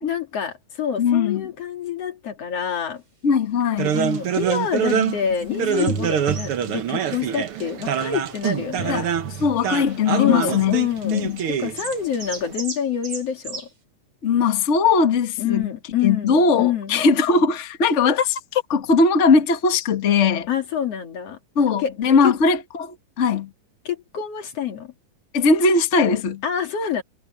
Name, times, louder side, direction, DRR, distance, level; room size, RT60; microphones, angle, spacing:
voice 1, 0.0-3.0 3.9-9.0 10.2-13.7 15.4-17.1 20.5-21.4 21.8-21.9 22.2-22.4 23.8-24.9 26.4-27.0, left 8 dB, 50° left, 3.1 m, -26 dB
voice 2, 1.0-1.5 3.2-4.0 4.9-5.1 5.5-6.1 8.9-9.1 9.4-10.8 11.0-11.4 14.2-15.7 16.0-20.5 21.5-23.5 25.3-26.4, left 4 dB, 70° left, 0.6 m, -20 dB
sound 1, 3.8-12.5, right 8 dB, 60° right, 1.5 m, -25 dB
sound 2, 5.3-5.5 5.7-6.0 6.3-6.7 7.1-7.9 8.3-8.4 9.4-10.1 11.3-11.5 11.8-13.7, right 3 dB, 35° right, 6.4 m, -36 dB
omnidirectional pair, 3.9 m